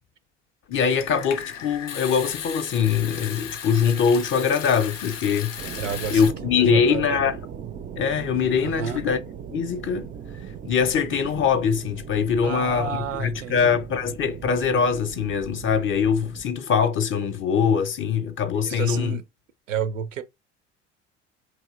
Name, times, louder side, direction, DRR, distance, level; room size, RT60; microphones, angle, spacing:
Water tap faucet / Sink (filling or washing) / Trickle dribble, 0.7-6.3, left 8 dB, 85° left, 0.5 m, -36 dB
voice 1, 0.7-5.8 6.1-7.4 8.0-9.2 9.5-10.1 10.6-19.2, left 6 dB, 35° left, 0.6 m, -23 dB
sound 1, 5.6-16.4, right 8 dB, 25° right, 0.4 m, -39 dB
voice 2, 5.7-6.3 6.6-7.2 8.6-9.0 12.4-13.8 18.6-19.2 19.7-20.2, right 7 dB, 85° right, 0.6 m, -30 dB
3.1 x 2.7 x 2.4 m
figure-of-eight pair, 60°, 37 cm